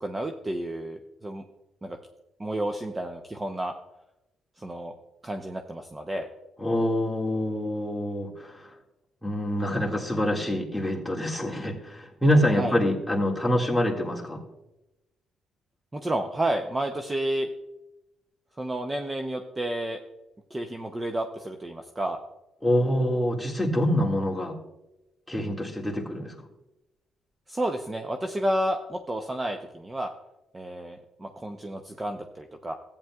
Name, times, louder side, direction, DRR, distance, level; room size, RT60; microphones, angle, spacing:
voice 1, 0.0-1.4 1.8-2.0 2.4-3.7 4.6-4.9 5.2-6.3 12.5-12.8 15.9-17.5 18.6-20.0 20.5-22.2 27.5-30.1 30.5-32.7, right 1 dB, 20° right, 4 dB, 0.7 m, -31 dB
voice 2, 6.6-8.7 9.2-14.4 22.6-24.6 25.3-26.3, equal, ahead, -2 dB, 2.0 m, -26 dB
14.0 x 8.9 x 2.4 m, 0.93 s
cardioid pair, 80°, 0 cm